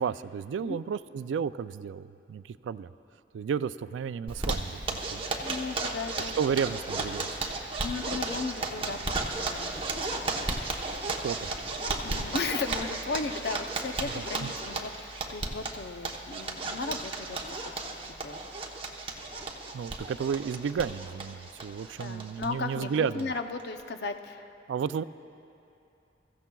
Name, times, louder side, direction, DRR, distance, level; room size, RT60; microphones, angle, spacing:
voice 1, 0.0-2.9 3.3-5.2 6.4-7.3 11.2-11.5 14.0-14.5 19.7-23.3 24.7-25.0, right 7 dB, 90° right, 15 dB, 0.3 m, -32 dB
Zipper (clothing), 4.3-22.5 22.8-22.9 23.2-23.3 23.6-24.1, right 3 dB, 30° right, 0.9 m, -34 dB
sound 1, 4.9-9.3, right 1 dB, 70° right, 1.0 m, -53 dB
voice 2, 5.4-6.4 7.8-10.6 12.0-18.4 22.0-24.5, left 4 dB, 65° left, 7 dB, 0.6 m, -36 dB
23.0 x 15.0 x 2.3 m, 2.7 s
head